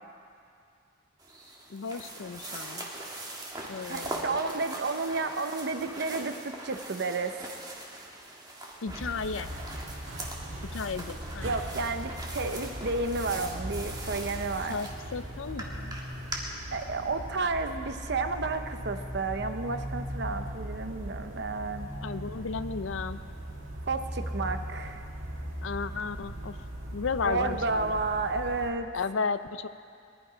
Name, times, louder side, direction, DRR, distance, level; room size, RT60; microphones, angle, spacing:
sound 1, 1.2-16.4, right 2 dB, 20° right, 1.7 m, -41 dB
voice 1, 1.7-2.9 3.7-4.3 8.8-9.5 10.7-11.5 14.7-16.0 22.0-23.2 25.6-26.6 26.9-28.1 28.9-29.7, left 5 dB, 75° left, 13 dB, 0.5 m, -34 dB
voice 2, 3.9-7.3 11.4-14.8 16.7-21.9 23.9-25.0 27.2-28.9, right 3 dB, 60° right, 8 dB, 0.8 m, -31 dB
sound 2, 8.8-28.7, right 1 dB, 85° right, 2.0 m, -39 dB
20.5 x 11.0 x 5.1 m, 2.4 s
head